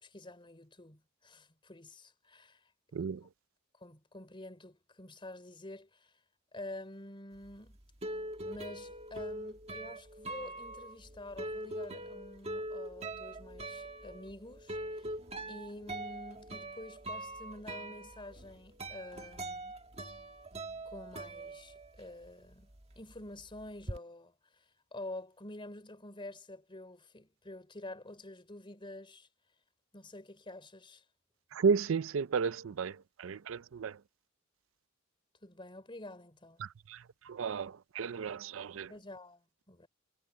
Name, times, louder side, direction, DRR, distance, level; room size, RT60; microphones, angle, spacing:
voice 1, 0.0-2.6 3.8-6.1 6.5-7.8 8.4-15.1 15.5-19.7 20.9-24.6 24.9-29.3 29.9-31.0 35.4-36.6 38.9-39.9, left 1 dB, 25° left, 3.9 m, -48 dB
voice 2, 2.9-3.3 31.5-34.0 36.6-38.9, right 5 dB, 65° right, 0.4 m, -33 dB
sound 1, 7.4-22.3 22.5-24.0, right 1 dB, 30° right, 1.8 m, -43 dB
head